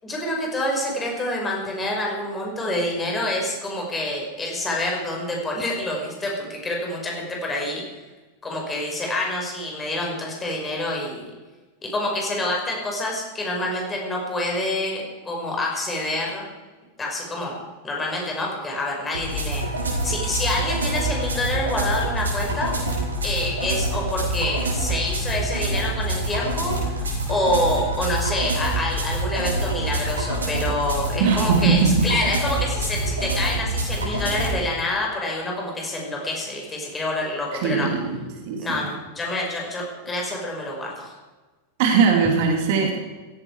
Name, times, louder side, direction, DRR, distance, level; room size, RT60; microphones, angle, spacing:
voice 1, 0.0-7.8 8.4-11.3 11.8-16.5 17.0-19.6 20.0-22.7 23.2-27.0 27.3-37.9 38.6-41.2, left 1 dB, 15° left, -1 dB, 5.3 m, -27 dB
sound 1, 19.1-34.5, right 1 dB, 70° right, 4.9 m, -26 dB
voice 2, 31.2-32.1 37.5-38.9 41.8-43.0, right 5 dB, 50° right, 3 dB, 2.9 m, -20 dB
16.5 x 14.5 x 4.8 m, 1.2 s
figure-of-eight pair, 90°, 0 cm